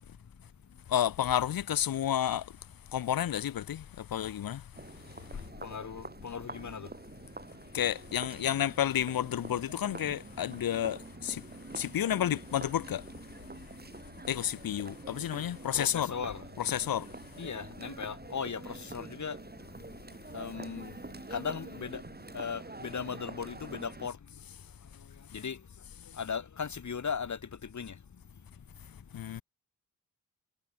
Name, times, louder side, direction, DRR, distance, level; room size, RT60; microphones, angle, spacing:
voice 1, 0.9-2.5 2.9-4.7 7.7-11.5 11.7-13.0 14.3-16.2 16.6-17.1 29.1-29.4, left 10 dB, 90° left, 2.1 m, -31 dB
sound 1, 4.7-24.1, right 3 dB, 30° right, 7.4 m, -46 dB
voice 2, 5.6-6.9 15.7-16.4 17.4-19.4 20.3-20.9 21.3-22.0 22.3-24.1 25.3-25.6 26.2-27.4 27.7-27.9, left 6 dB, 55° left, 3.0 m, -37 dB
cardioid pair, 65°, 34 cm